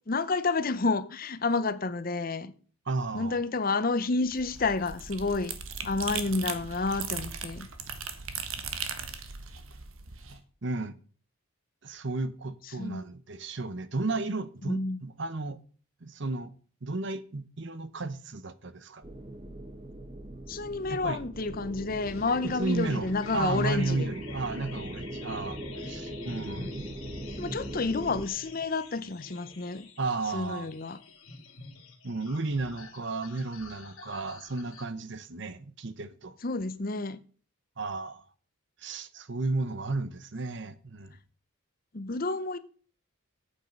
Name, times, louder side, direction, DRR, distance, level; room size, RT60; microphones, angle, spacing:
voice 1, 0.1-2.5 3.1-5.5 5.8-7.7 12.8-13.0 14.7-15.0 20.5-24.1 27.4-29.9 30.3-31.0 36.4-37.2 41.9-42.6, left 3 dB, 40° left, 0.7 m, -30 dB
voice 2, 2.9-3.4 10.6-11.0 11.8-15.6 16.0-16.5 16.8-19.0 20.9-21.2 22.4-25.6 25.8-26.9 30.0-30.7 32.0-36.4 37.8-38.2 38.8-41.2, right 3 dB, 55° right, 0.8 m, -33 dB
sound 1, 4.3-10.4, right 6 dB, 70° right, 1.4 m, -38 dB
sound 2, 19.0-28.3, right 1 dB, 25° right, 1.0 m, -40 dB
sound 3, 22.0-34.9, left 3 dB, 70° left, 2.5 m, -47 dB
8.8 x 8.4 x 5.3 m
head